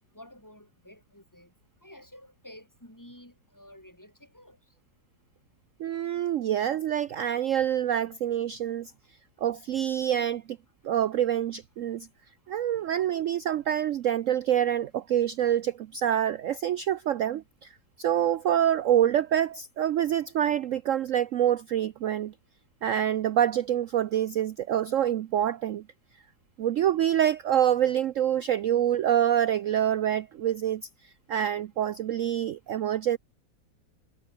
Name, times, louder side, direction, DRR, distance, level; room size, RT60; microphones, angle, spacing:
voice 1, 0.1-1.5 1.8-4.6, left 1 dB, 10° left, 6.6 m, -51 dB
voice 2, 5.8-8.9 9.4-10.6 10.8-12.1 12.5-22.3 22.8-25.8 26.6-33.2, right 10 dB, 80° right, 0.7 m, -26 dB
omnidirectional pair, 2.0 m